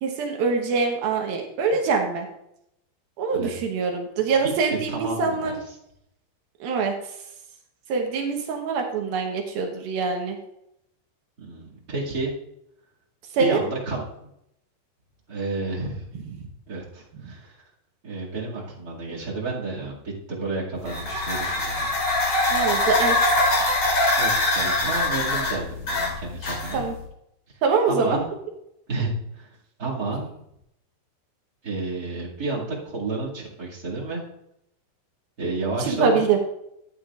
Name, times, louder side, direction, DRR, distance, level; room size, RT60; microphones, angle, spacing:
voice 1, 0.0-2.3 3.2-5.6 6.6-6.9 7.9-10.4 13.3-13.6 22.5-23.4 26.7-26.9 27.6-28.2 35.8-36.4, right 4 dB, 70° right, 2 dB, 2.7 m, -24 dB
voice 2, 4.9-5.5 11.4-12.3 13.4-14.0 15.3-16.0 16.7-17.6 18.0-21.9 24.2-26.8 27.9-28.2 28.9-29.5 29.8-30.3 31.6-34.2 35.4-36.2, right 3 dB, 30° right, -5 dB, 1.8 m, -30 dB
sound 1, 20.8-27.0, left 2 dB, 35° left, 3.5 m, -23 dB
13.5 x 9.6 x 2.4 m, 0.78 s
omnidirectional pair, 4.9 m